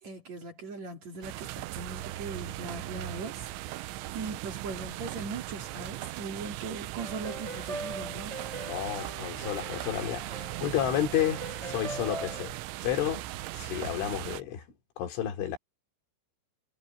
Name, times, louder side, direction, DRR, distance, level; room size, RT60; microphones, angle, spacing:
voice 1, 0.0-8.4, right 3 dB, 40° right, 4.0 m, -40 dB
sound 1, 1.2-14.4, right 16 dB, 90° right, 3.2 m, -38 dB
sound 2, 7.0-12.5, right 2 dB, 10° right, 2.6 m, -41 dB
voice 2, 8.7-12.5 12.8-14.7 15.0-15.6, left 11 dB, 80° left, 5.4 m, -31 dB
omnidirectional pair, 5.4 m